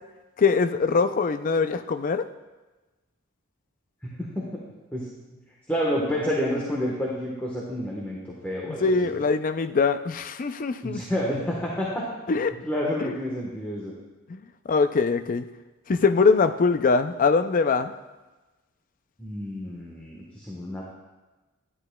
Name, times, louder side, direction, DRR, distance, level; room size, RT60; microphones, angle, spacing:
voice 1, 0.4-2.2 8.8-11.0 12.3-12.5 13.0-13.1 14.3-14.4 14.7-15.4 15.9-17.9, left 4 dB, 40° left, 10 dB, 0.4 m, -22 dB
voice 2, 4.0-4.5 4.9-5.1 5.7-9.1 10.8-12.1 12.6-13.9 19.2-21.0, equal, 10° left, -5 dB, 1.1 m, -29 dB
11.0 x 10.5 x 2.2 m, 1.1 s
head